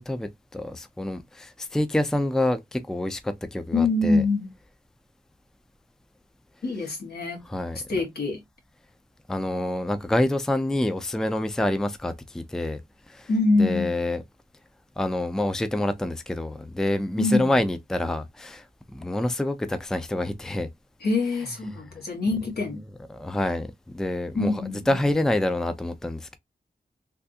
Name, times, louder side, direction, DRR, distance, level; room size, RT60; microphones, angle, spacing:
voice 1, 0.0-4.2 7.5-7.8 9.3-12.8 13.1-13.3 13.6-14.2 15.0-18.7 18.9-20.7 21.7-21.8 23.1-23.7 23.9-26.4, left 1 dB, 5° left, 0.4 m, -27 dB
voice 2, 3.7-4.5 6.6-7.4 7.9-8.4 13.3-13.9 17.2-17.6 21.0-22.8 24.3-25.0, left 3 dB, 75° left, 1.4 m, -24 dB
3.4 x 2.4 x 2.7 m
wide cardioid pair, 75°, 17 cm